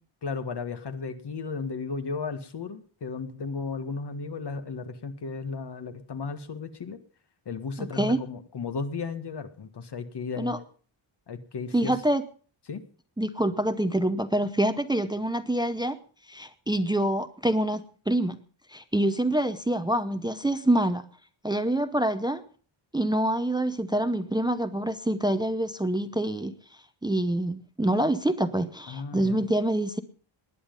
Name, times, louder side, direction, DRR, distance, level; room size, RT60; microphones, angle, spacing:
voice 1, 0.2-7.0 7.5-10.6 11.3-11.9 12.7-12.8 28.9-29.4, left 4 dB, 55° left, 10 dB, 1.8 m, -34 dB
voice 2, 7.8-8.2 10.4-10.6 11.7-12.2 13.2-16.0 16.3-18.4 18.7-21.0 21.4-22.4 22.9-26.5 27.0-30.0, right 1 dB, 10° right, 11 dB, 0.7 m, -26 dB
19.5 x 10.0 x 5.3 m, 0.42 s
wide cardioid pair, 150°, 49 cm